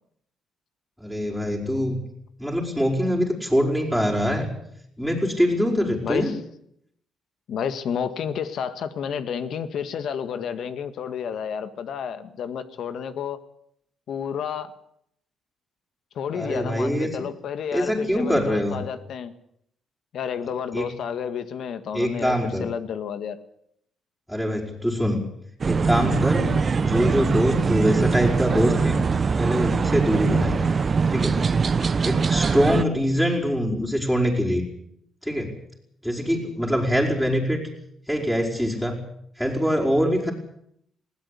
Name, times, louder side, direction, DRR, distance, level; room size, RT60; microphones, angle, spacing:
voice 1, 1.0-2.0 2.4-4.5 5.0-6.3 16.3-17.2 17.7-18.8 20.7-20.9 21.9-22.6 24.3-25.2 25.7-26.5 26.8-29.0 29.4-30.6 31.1-31.4 32.0-34.6 35.2-35.5 36.0-37.6 38.1-39.0 39.4-40.3, equal, 5° left, -4 dB, 5.3 m, -23 dB
voice 2, 6.0-6.4 7.5-13.4 14.1-14.7 16.2-19.3 20.1-23.4 26.4-26.6, left 7 dB, 70° left, 11 dB, 1.8 m, -30 dB
sound 1, 25.6-32.8, right 5 dB, 40° right, 1.0 m, -22 dB
20.5 x 16.5 x 8.5 m, 0.73 s
cardioid pair, 90°, 0 cm